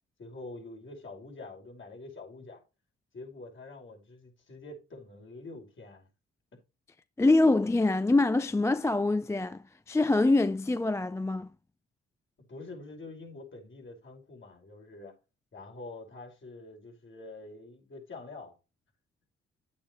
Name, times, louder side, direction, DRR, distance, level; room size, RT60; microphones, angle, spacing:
voice 1, 0.2-2.6 3.1-6.1 12.4-15.2 15.5-18.5, left 2 dB, 40° left, 5.3 m, -46 dB
voice 2, 7.2-11.5, left 2 dB, 10° left, 0.4 m, -25 dB
10.5 x 8.6 x 3.1 m
cardioid pair, 90°, 30 cm